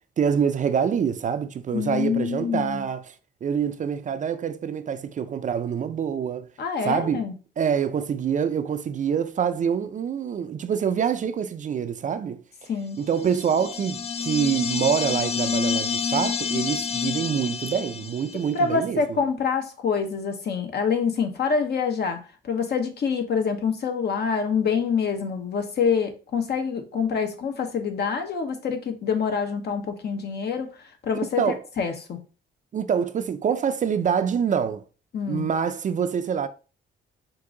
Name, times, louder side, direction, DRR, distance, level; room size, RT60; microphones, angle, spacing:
voice 1, 0.2-3.1 3.4-6.5 6.8-7.2 7.6-12.4 13.0-19.0 31.4-31.6 32.7-34.8 35.3-36.5, right 7 dB, 40° right, 0.4 m, -25 dB
voice 2, 1.7-2.9 6.6-7.3 12.7-13.0 18.3-30.7 31.0-32.2 35.1-35.5, left 6 dB, 55° left, 1.0 m, -26 dB
sound 1, 13.1-18.5, left 6 dB, 30° left, 0.3 m, -28 dB
4.6 x 2.6 x 3.7 m
cardioid pair, 90°, 20 cm